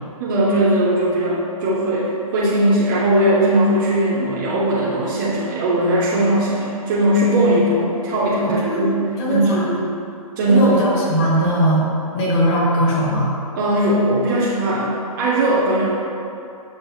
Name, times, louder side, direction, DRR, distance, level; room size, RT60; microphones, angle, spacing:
voice 1, 0.2-9.8 10.4-10.8 13.6-16.0, right 1 dB, 35° right, -7 dB, 0.6 m, -19 dB
voice 2, 8.4-8.9 9.2-9.6 10.5-11.9 12.1-13.3, equal, 45° left, -5 dB, 1.2 m, -19 dB
6.3 x 2.7 x 2.3 m, 2.6 s
hypercardioid pair, 145°, 19 cm